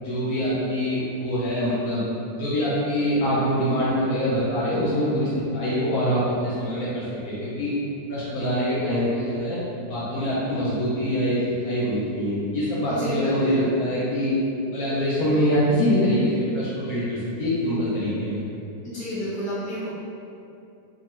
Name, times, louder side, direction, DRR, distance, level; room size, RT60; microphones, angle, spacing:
voice 1, 0.0-2.0 2.4-7.7 8.1-9.6 9.9-11.4 11.6-14.3 14.7-18.4, equal, 70° left, -9 dB, 1.0 m, -24 dB
voice 2, 12.9-13.6 18.8-19.9, left 1 dB, 5° left, -13 dB, 0.9 m, -30 dB
2.7 x 2.3 x 2.9 m, 2.6 s
omnidirectional pair, 1.8 m